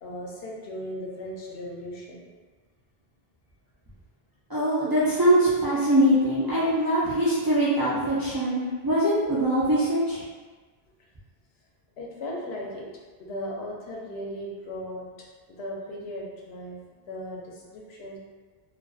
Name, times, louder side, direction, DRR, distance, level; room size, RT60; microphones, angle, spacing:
voice 1, 0.0-2.2 12.0-12.9 13.2-16.8 17.1-18.2, equal, 85° left, -3 dB, 0.8 m, -37 dB
voice 2, 4.5-10.2, right 1 dB, 30° right, -11 dB, 0.4 m, -22 dB
2.5 x 2.3 x 2.3 m, 1.4 s
omnidirectional pair, 1.0 m